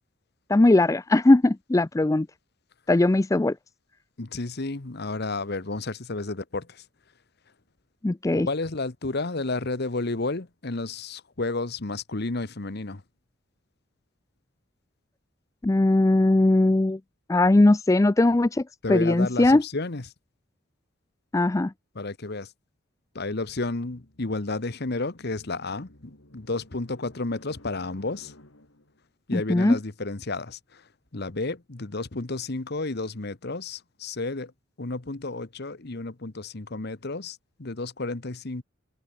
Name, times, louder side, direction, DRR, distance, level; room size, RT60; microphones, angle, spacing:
voice 1, 0.5-2.3 2.9-3.5 8.0-8.5 15.6-17.0 17.3-18.6 18.9-19.6 21.3-21.7 29.3-29.8, left 2 dB, 15° left, 0.4 m, -19 dB
voice 2, 4.2-6.8 8.3-13.0 18.8-20.1 21.9-22.5 23.1-28.3 29.3-30.8 31.1-34.5 34.8-38.6, left 3 dB, 55° left, 1.2 m, -31 dB
sound 1, 23.6-29.0, left 1 dB, 70° left, 4.7 m, -53 dB
head